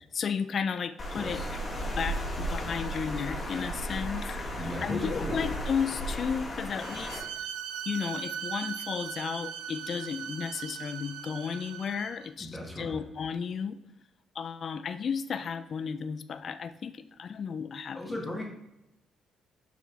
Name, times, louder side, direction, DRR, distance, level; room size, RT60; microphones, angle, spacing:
voice 1, 0.1-1.6 2.0-7.2 7.9-13.8 14.4-18.2, left 6 dB, 55° left, 11 dB, 0.4 m, -34 dB
Water, 1.0-7.2, equal, 25° left, 2.0 m, -35 dB
voice 2, 1.1-1.5 4.5-5.4 12.4-13.0 17.9-18.4, left 1 dB, 10° left, -2 dB, 1.9 m, -36 dB
Bowed string instrument, 6.8-12.3, right 8 dB, 90° right, 0.6 m, -39 dB
5.8 x 5.8 x 4.6 m, 0.87 s
cardioid pair, 90°, 0 cm